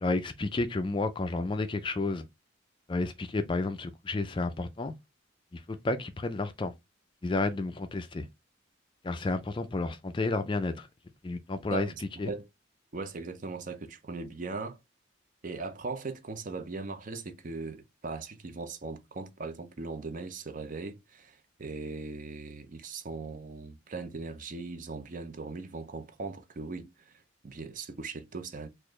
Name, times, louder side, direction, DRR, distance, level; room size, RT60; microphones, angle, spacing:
voice 1, 0.0-2.3 2.9-4.9 5.7-6.7 7.2-8.3 9.0-10.9 11.2-11.9 12.2-12.3, left 2 dB, 25° left, 0.3 m, -31 dB
voice 2, 11.7-12.5 12.9-14.8 15.4-27.1 27.4-28.7, right 3 dB, 40° right, 0.5 m, -39 dB
4.1 x 2.5 x 3.0 m
head